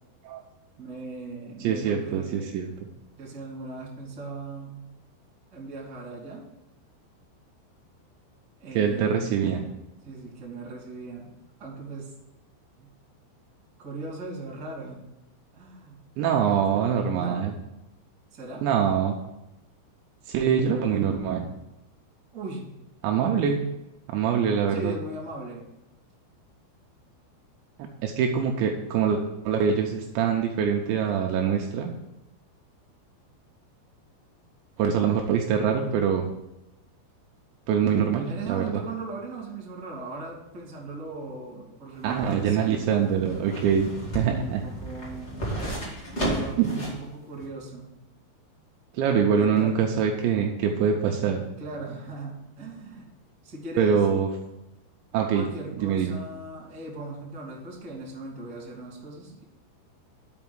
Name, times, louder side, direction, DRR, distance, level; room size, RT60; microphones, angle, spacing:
voice 1, 0.8-2.6 3.2-4.9 5.5-6.4 8.6-9.3 10.0-11.3 11.6-12.1 12.8-12.9 13.8-15.0 15.6-16.0 16.7-17.4 18.3-18.6 22.3-22.7 24.7-25.6 37.8-43.0 44.1-45.4 46.1-47.9 49.4-49.8 51.6-53.1 53.4-54.1 55.3-59.4, right 2 dB, 30° right, -5 dB, 2.5 m, -38 dB
voice 2, 1.6-2.7 8.8-9.6 16.2-17.5 18.6-19.2 20.3-21.4 23.0-23.6 24.1-24.9 27.8-31.9 34.8-36.3 37.7-38.7 42.0-44.6 46.6-46.8 48.9-51.4 53.8-54.3 55.1-55.4 55.8-56.1, right 7 dB, 80° right, 2 dB, 2.9 m, -24 dB
sound 1, 41.9-47.0 47.4-47.5, right 1 dB, 40° left, 0.9 m, -33 dB
6.1 x 5.9 x 7.2 m, 0.91 s
omnidirectional pair, 5.4 m